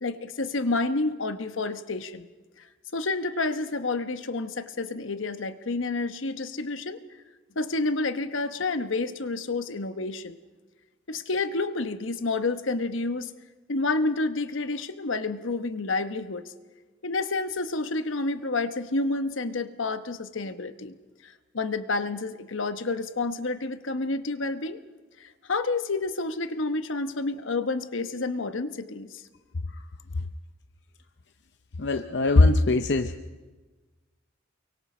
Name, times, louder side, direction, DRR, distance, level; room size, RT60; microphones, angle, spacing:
voice 1, 0.0-2.3 2.9-7.0 7.6-10.4 11.1-13.3 13.7-16.4 17.0-21.0 21.2-24.8 25.2-29.2, left 3 dB, 75° left, 10 dB, 1.0 m, -29 dB
voice 2, 31.8-33.2, left 2 dB, 55° left, 7 dB, 0.6 m, -20 dB
29.0 x 23.5 x 4.3 m, 1.3 s
head